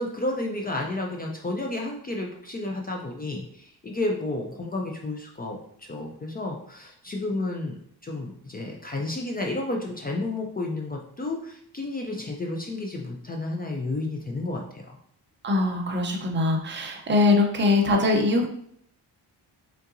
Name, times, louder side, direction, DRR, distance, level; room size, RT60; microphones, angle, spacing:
voice 1, 0.0-15.0, left 2 dB, 25° left, 0 dB, 0.4 m, -31 dB
voice 2, 15.4-18.5, left 3 dB, 25° right, 2 dB, 0.6 m, -22 dB
5.4 x 3.8 x 2.5 m, 0.65 s
wide cardioid pair, 170°, 41 cm